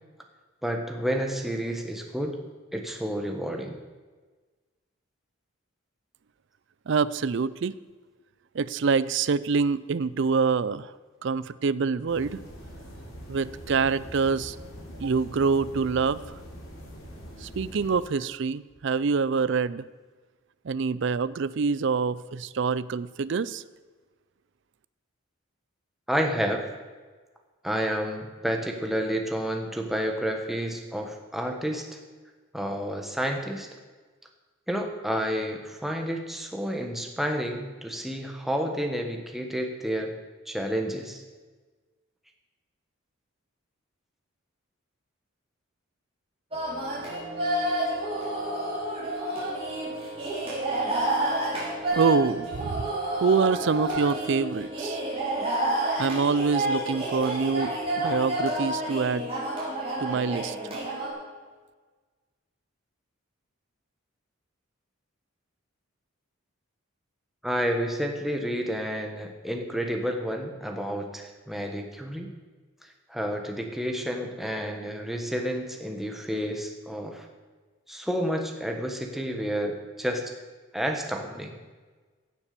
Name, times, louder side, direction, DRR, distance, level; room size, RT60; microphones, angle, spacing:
voice 1, 0.6-2.4 2.7-3.8 26.1-26.6 27.6-32.0 32.5-33.7 34.7-40.1 40.5-41.2 67.4-72.3 72.8-77.3 77.9-80.3 80.7-81.5, equal, ahead, 3 dB, 1.2 m, -30 dB
voice 2, 6.9-7.7 8.5-10.9 11.2-12.4 13.3-14.6 15.0-16.4 17.4-19.8 20.6-23.6 52.0-55.0 56.0-59.3 60.0-60.6, right 5 dB, 55° right, 18 dB, 0.4 m, -26 dB
sound 1, 12.1-18.0, equal, 70° left, 3.0 m, -43 dB
sound 2, 46.5-61.1, right 1 dB, 25° right, 4.4 m, -29 dB
16.0 x 7.2 x 6.7 m, 1.4 s
head